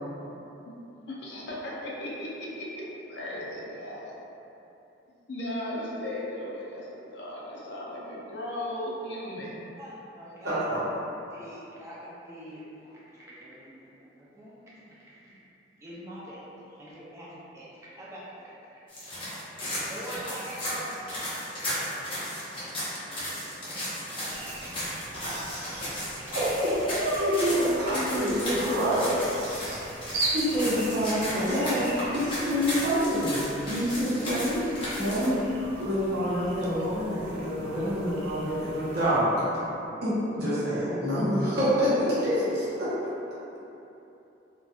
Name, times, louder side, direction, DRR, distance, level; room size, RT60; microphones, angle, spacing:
voice 1, 0.0-0.8 1.1-4.1 5.3-9.6, left 1 dB, 70° left, -5 dB, 0.5 m, -37 dB
voice 2, 9.8-10.6 11.3-15.3 15.8-19.2 19.8-21.3 21.8-22.4 22.9-23.6 24.2-25.1, right 1 dB, 15° right, -9 dB, 0.5 m, -45 dB
voice 3, 10.4-10.8 25.2-29.8 30.3-39.4 40.0-43.1, equal, 60° right, -10 dB, 0.8 m, -27 dB
sound 1, 18.9-35.3, equal, 30° left, 0.7 m, -35 dB
sound 2, 24.3-39.1, right 2 dB, 85° right, 0.4 m, -40 dB
2.6 x 2.2 x 2.3 m, 2.9 s
head